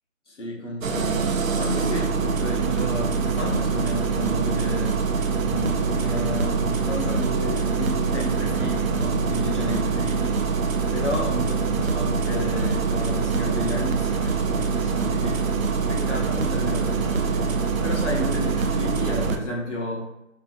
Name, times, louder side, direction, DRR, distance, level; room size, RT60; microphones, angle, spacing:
voice 1, 0.3-5.0 5.4-10.5 10.9-15.4 15.9-20.0, equal, 60° left, -2 dB, 0.9 m, -31 dB
Engine starting, 0.8-19.4, right 5 dB, 80° right, 0.5 m, -24 dB
2.8 x 2.6 x 2.6 m, 0.90 s
figure-of-eight pair, 175°, 40 cm